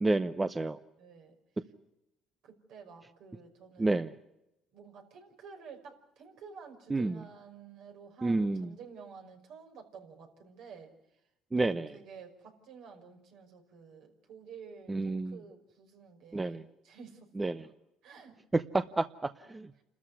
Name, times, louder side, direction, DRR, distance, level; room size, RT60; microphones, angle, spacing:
voice 1, 0.0-0.8 3.8-4.1 6.9-7.2 8.2-8.7 11.5-11.9 14.9-15.4 16.3-16.6 17.4-17.7 18.5-19.7, right 2 dB, 15° right, 12 dB, 0.8 m, -30 dB
voice 2, 1.0-1.3 2.4-4.0 4.7-11.2 11.6-16.6 16.8-17.7 18.0-18.4 19.8-19.9, right 6 dB, 70° right, 3 dB, 5.5 m, -51 dB
29.0 x 13.5 x 9.8 m, 0.90 s
cardioid pair, 105°, 0 cm